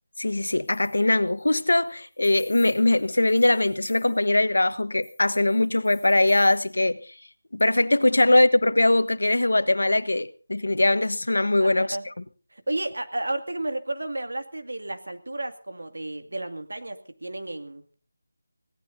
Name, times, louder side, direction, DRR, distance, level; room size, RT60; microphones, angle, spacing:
voice 1, 0.2-7.0 7.5-12.0, left 2 dB, 80° left, 1.2 m, -21 dB
sound 1, 0.6-4.3 5.0-6.7, left 5 dB, 20° left, 2.5 m, -52 dB
voice 2, 11.6-12.1 12.5-17.9, right 2 dB, 80° right, 2.2 m, -32 dB
25.0 x 17.5 x 2.7 m
figure-of-eight pair, 165°, 0 cm